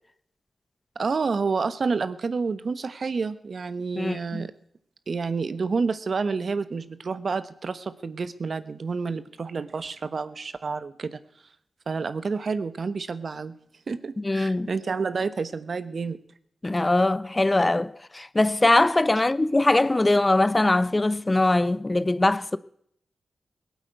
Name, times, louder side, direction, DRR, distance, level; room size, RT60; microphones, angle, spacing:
voice 1, 0.9-4.5 5.1-11.2 11.9-13.6 13.9-16.2, right 4 dB, 60° right, 1.0 m, -29 dB
voice 2, 4.0-4.5 14.2-14.7 16.6-22.6, left 2 dB, 25° left, 0.6 m, -22 dB
17.5 x 8.2 x 9.3 m
cardioid pair, 45°, 0 cm